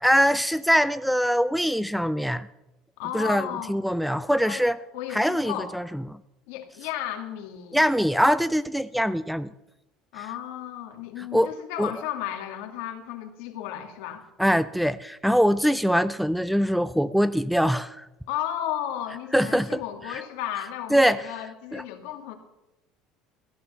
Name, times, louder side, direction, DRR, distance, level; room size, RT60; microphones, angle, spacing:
voice 1, 0.0-2.5 3.1-4.8 5.1-5.8 7.7-9.5 11.2-11.5 11.8-11.9 14.4-18.1 19.3-19.8 20.1-20.2 20.9-21.2 21.7-21.8, equal, ahead, 16 dB, 0.4 m, -23 dB
voice 2, 3.0-3.7 4.5-4.7 4.9-5.7 6.5-7.8 10.1-14.2 18.3-22.4, left 11 dB, 80° left, 4 dB, 2.2 m, -34 dB
15.0 x 10.5 x 6.9 m, 0.93 s
cardioid pair, 135°, 0 cm